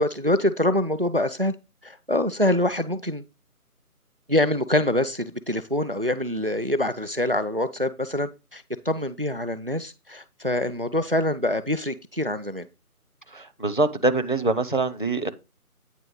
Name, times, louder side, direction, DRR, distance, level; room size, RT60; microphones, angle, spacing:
voice 1, 0.0-1.5 1.8-3.2 4.3-12.7, left 1 dB, 40° right, 0.5 m, -25 dB
voice 2, 13.3-15.3, right 2 dB, 35° left, 0.6 m, -24 dB
9.2 x 3.3 x 6.4 m
figure-of-eight pair, 170°, 45 cm